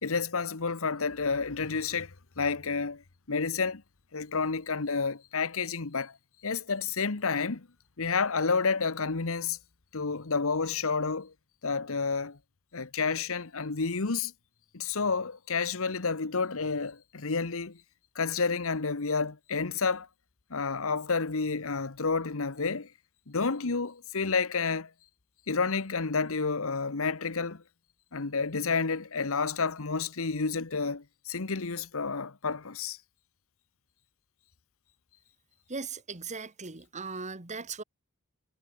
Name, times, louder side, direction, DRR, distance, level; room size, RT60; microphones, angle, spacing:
voice 1, 0.0-3.0 3.3-3.8 4.1-6.1 6.4-7.7 8.0-9.6 9.9-11.3 11.6-12.4 12.7-14.3 14.7-17.8 18.1-20.1 20.5-22.9 23.3-24.9 25.5-27.6 28.1-33.0, left 4 dB, 70° left, 1.2 m, -30 dB
voice 2, 35.7-37.8, right 4 dB, 35° right, 1.8 m, -38 dB
head